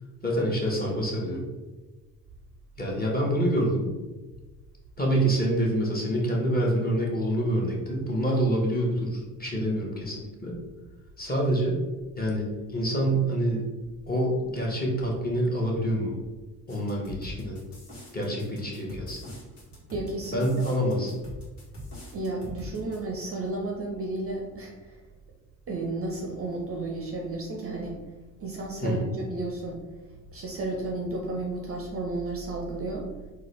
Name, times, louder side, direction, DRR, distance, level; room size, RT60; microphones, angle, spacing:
voice 1, 0.2-1.5 2.8-3.9 5.0-10.5 11.2-11.8 12.2-13.6 14.1-16.1 16.7-17.6 18.1-19.3 20.3-21.2 28.8-29.1, right 1 dB, 20° left, -3 dB, 1.0 m, -26 dB
sound 1, 16.7-23.0, left 1 dB, 65° left, 1.3 m, -43 dB
voice 2, 19.9-20.7 22.1-25.0 25.7-28.0 28.4-29.8 30.3-33.1, right 2 dB, 30° right, 0 dB, 0.5 m, -33 dB
3.7 x 2.2 x 3.1 m, 1.2 s
hypercardioid pair, 50°, 45 cm